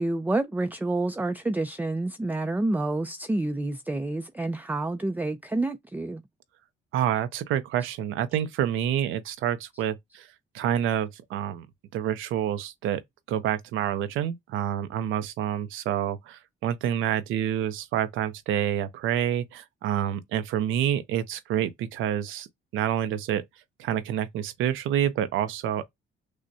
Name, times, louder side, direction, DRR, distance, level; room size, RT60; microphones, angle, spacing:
voice 1, 0.0-6.2, right 2 dB, 10° right, 0.4 m, -28 dB
voice 2, 6.9-10.3 10.5-11.7 11.9-13.0 13.3-22.5 22.7-23.4 23.8-25.9, right 10 dB, 85° right, 0.6 m, -28 dB
6.3 x 2.1 x 2.7 m
cardioid pair, 90°, 20 cm